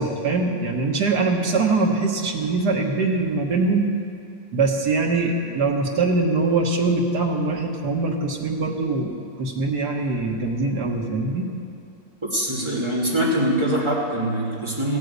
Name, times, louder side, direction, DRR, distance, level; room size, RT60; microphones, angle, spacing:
voice 1, 0.0-3.9 4.5-11.5, right 3 dB, 85° right, 1 dB, 2.0 m, -23 dB
voice 2, 12.3-15.0, right 1 dB, 15° right, -5 dB, 2.7 m, -23 dB
15.5 x 9.6 x 8.2 m, 2.7 s
omnidirectional pair, 1.7 m